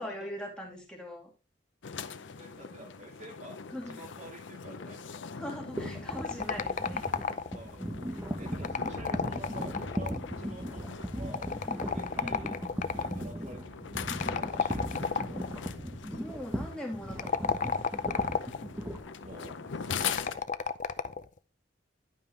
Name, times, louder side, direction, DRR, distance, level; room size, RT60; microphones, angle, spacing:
voice 1, 0.0-1.3 3.7-4.0 5.4-7.1 12.2-12.7 16.2-17.7, equal, 5° left, -1 dB, 2.5 m, -41 dB
sound 1, 1.8-20.3, left 6 dB, 85° left, 0.6 m, -42 dB
voice 2, 2.0-3.6 3.9-5.2 7.5-11.5 11.8-12.6 12.9-13.8 14.1-15.4 19.2-20.5, right 1 dB, 40° right, 3 dB, 1.3 m, -49 dB
sound 2, 5.8-19.8, equal, 15° right, 1.4 m, -38 dB
sound 3, 6.1-7.7 8.5-10.4 11.3-13.2 14.2-15.5 17.1-18.7 19.9-21.3, left 5 dB, 45° left, 0.5 m, -32 dB
11.0 x 5.4 x 3.3 m, 0.31 s
head